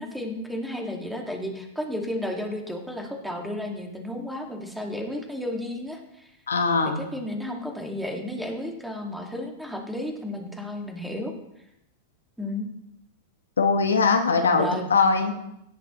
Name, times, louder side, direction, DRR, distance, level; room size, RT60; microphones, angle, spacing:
voice 1, 0.0-6.3 7.0-11.3 12.4-12.7 14.6-14.8, left 1 dB, ahead, 1 dB, 2.1 m, -32 dB
voice 2, 6.5-7.0 13.6-15.3, left 4 dB, 80° left, 6 dB, 1.2 m, -21 dB
17.5 x 7.1 x 3.1 m, 0.82 s
figure-of-eight pair, 95°, 0 cm